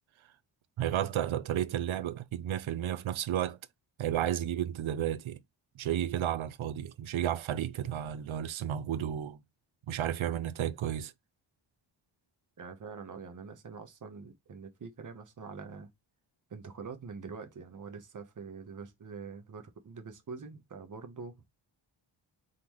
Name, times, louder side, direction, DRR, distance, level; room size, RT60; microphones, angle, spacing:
voice 1, 0.8-3.6 4.0-5.4 5.8-9.4 9.9-11.1, right 10 dB, 75° right, 0.7 m, -32 dB
voice 2, 12.6-15.9 16.5-21.3, right 5 dB, 40° right, 1.0 m, -45 dB
3.9 x 3.7 x 3.0 m
wide cardioid pair, 140°, 48 cm